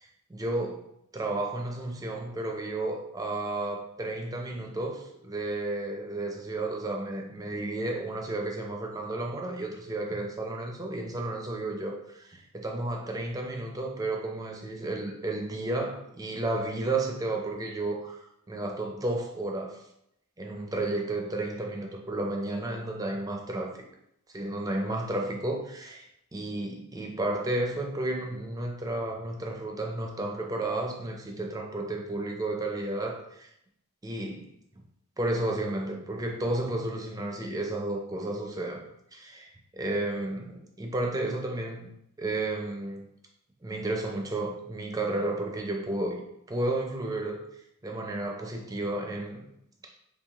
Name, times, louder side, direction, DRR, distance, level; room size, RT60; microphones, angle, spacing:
voice 1, 0.3-0.8 1.1-19.8 20.4-23.8 24.3-33.5 34.0-34.5 35.2-38.9 39.1-41.9 42.2-43.1 43.6-46.2 46.5-47.4 47.8-49.5, right 2 dB, 15° right, 0.5 m, -32 dB
4.7 x 3.1 x 2.3 m
head